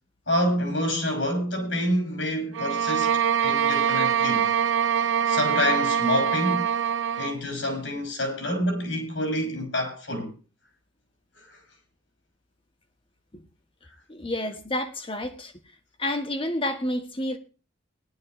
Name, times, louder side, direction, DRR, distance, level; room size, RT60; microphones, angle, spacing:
voice 1, 0.3-4.5 5.3-6.7 7.2-10.3, left 1 dB, 80° left, 5.9 m, -27 dB
sound 1, 2.5-7.4, right 8 dB, 85° right, 0.6 m, -24 dB
voice 2, 14.1-15.5 16.0-17.4, left 1 dB, 30° left, 1.2 m, -29 dB
18.5 x 11.0 x 3.1 m
head